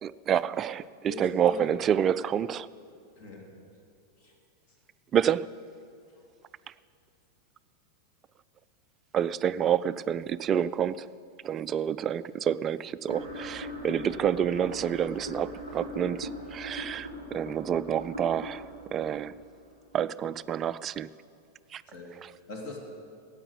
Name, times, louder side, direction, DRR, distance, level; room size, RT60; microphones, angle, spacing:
voice 1, 0.0-2.7 5.1-5.5 9.1-11.1 11.4-19.3 19.9-21.1 21.7-21.8 22.2-22.3, right 9 dB, 25° right, 16 dB, 0.3 m, -28 dB
voice 2, 1.1-1.7 3.2-3.6 4.2-4.3 21.9-22.2 22.5-22.8, left 3 dB, 40° left, 1 dB, 2.7 m, -41 dB
sound 1, 13.1-20.1, equal, 90° left, 3.6 m, -41 dB
14.5 x 9.0 x 8.3 m, 2.4 s
figure-of-eight pair, 90°, 0 cm